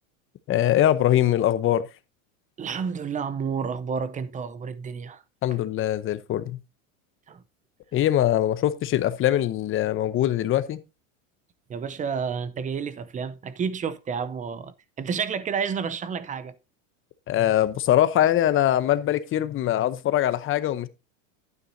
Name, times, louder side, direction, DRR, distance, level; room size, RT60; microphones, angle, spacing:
voice 1, 0.5-1.8 5.4-6.6 7.9-10.8 17.3-20.9, left 12 dB, 30° left, 0.8 m, -22 dB
voice 2, 2.6-5.2 7.3-7.4 11.7-16.5, right 6 dB, 20° right, 0.6 m, -30 dB
11.0 x 9.4 x 2.7 m
supercardioid pair, 125°, 40 cm